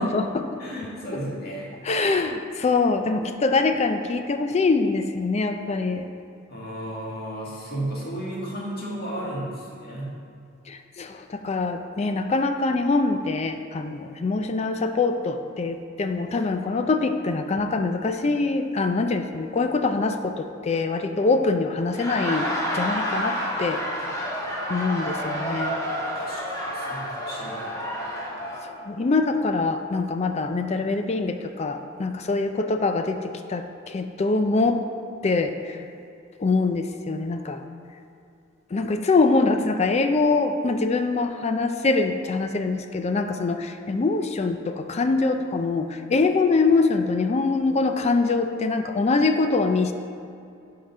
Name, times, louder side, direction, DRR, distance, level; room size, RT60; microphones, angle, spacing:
voice 1, 0.0-0.5 1.8-6.1 10.7-23.8 24.7-25.8 28.6-34.8 35.2-35.8 36.4-37.6 38.7-49.9, left 3 dB, 35° left, 7 dB, 0.4 m, -24 dB
voice 2, 0.6-1.7 6.5-10.2 26.1-27.8, right 1 dB, 50° left, -5 dB, 1.9 m, -33 dB
Laughter, 21.8-28.7, equal, 15° left, 1.4 m, -29 dB
10.5 x 3.8 x 5.4 m, 2.5 s
head